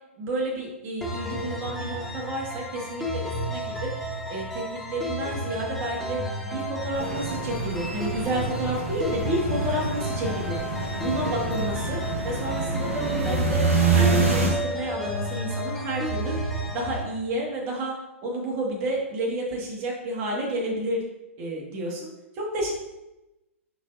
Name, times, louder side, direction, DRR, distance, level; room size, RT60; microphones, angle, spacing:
voice 1, 0.2-3.9 4.3-10.6 11.0-16.4 16.7-17.9 18.2-21.0 21.4-22.1 22.3-22.7, right 1 dB, 35° right, -2 dB, 2.1 m, -30 dB
sound 1, 1.0-17.0, equal, 5° left, 1.0 m, -32 dB
sound 2, 6.9-14.5, right 4 dB, 75° right, 1.5 m, -27 dB
6.5 x 6.0 x 2.8 m, 0.96 s
figure-of-eight pair, 115°, 7 cm